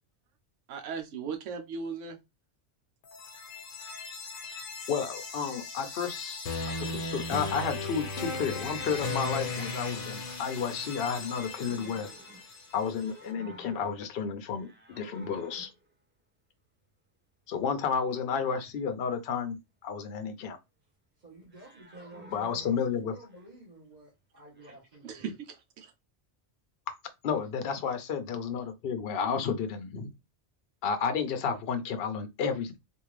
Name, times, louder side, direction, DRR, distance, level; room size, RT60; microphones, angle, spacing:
voice 1, 0.7-2.2 25.0-25.9, right 5 dB, 80° right, 1.0 m, -37 dB
sound 1, 3.0-13.0, left 3 dB, 90° left, 1.1 m, -37 dB
voice 2, 4.9-6.4 6.9-12.1 12.7-15.7 17.5-20.6 22.3-23.1 27.2-30.1 30.8-32.8, left 6 dB, 55° left, 0.8 m, -31 dB
sound 2, 11.0-12.7 12.9-14.2 14.5-15.9 21.5-23.5 24.5-24.8, right 1 dB, 15° right, 0.4 m, -52 dB
voice 3, 21.2-25.3, right 2 dB, 40° right, 1.2 m, -52 dB
3.5 x 2.5 x 3.1 m
omnidirectional pair, 1.3 m